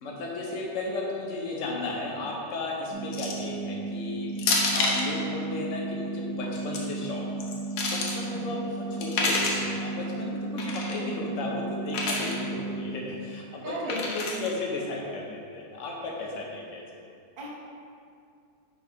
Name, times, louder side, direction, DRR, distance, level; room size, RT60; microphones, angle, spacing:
voice 1, 0.0-7.5 7.9-16.9, left 2 dB, 80° left, -2 dB, 0.7 m, -34 dB
sound 1, 2.9-12.9, right 3 dB, 50° right, 1.5 m, -34 dB
sound 2, 3.1-3.5 4.4-5.1 6.4-6.8 7.4-8.2 9.0-9.7 10.6-11.0 11.9-12.4 13.9-14.5, left 3 dB, 65° left, 1.3 m, -28 dB
voice 2, 13.6-13.9 17.4-17.5, right 2 dB, 65° right, -5 dB, 0.5 m, -37 dB
5.2 x 4.6 x 4.7 m, 2.4 s
omnidirectional pair, 2.4 m